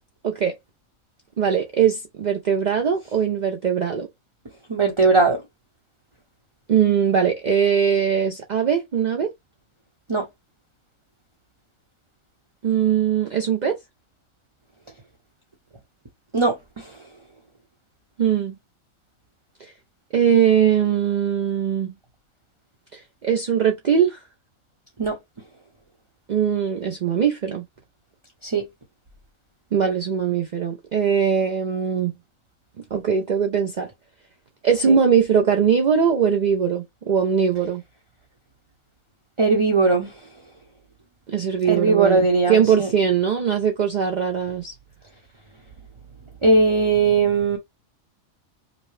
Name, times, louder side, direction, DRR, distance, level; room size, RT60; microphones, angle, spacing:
voice 1, 1.4-4.1 6.7-9.3 12.6-13.8 18.2-18.5 19.6-19.7 20.1-21.9 22.9-24.2 26.3-27.6 29.7-32.1 32.8-33.9 34.6-37.8 41.3-44.7, right 7 dB, 65° right, 0.4 m, -21 dB
voice 2, 4.7-5.4 10.1-10.3 16.3-16.9 25.0-25.2 28.4-28.7 34.9-35.0 39.4-40.1 41.7-42.9 46.4-47.6, right 3 dB, 25° right, 0.7 m, -19 dB
5.2 x 2.1 x 3.1 m
omnidirectional pair, 1.5 m